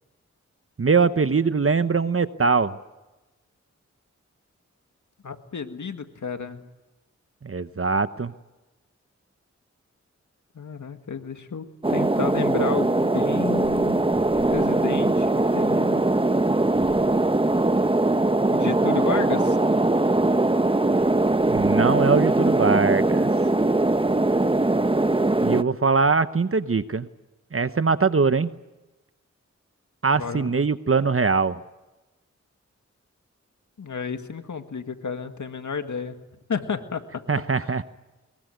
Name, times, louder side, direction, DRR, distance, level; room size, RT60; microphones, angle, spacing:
voice 1, 0.8-2.8 7.4-8.3 21.5-23.3 25.4-27.1 27.5-28.5 30.0-31.6 37.3-37.8, right 4 dB, 50° right, 12 dB, 1.0 m, -22 dB
voice 2, 5.2-6.7 10.6-16.0 18.5-19.6 30.1-30.5 33.8-36.1 36.5-37.2 37.6-37.8, left 5 dB, 90° left, 7 dB, 1.9 m, -32 dB
sound 1, 11.8-25.6, right 2 dB, 20° right, 0.9 m, -21 dB
23.0 x 22.0 x 9.3 m, 1.1 s
cardioid pair, 45°, 29 cm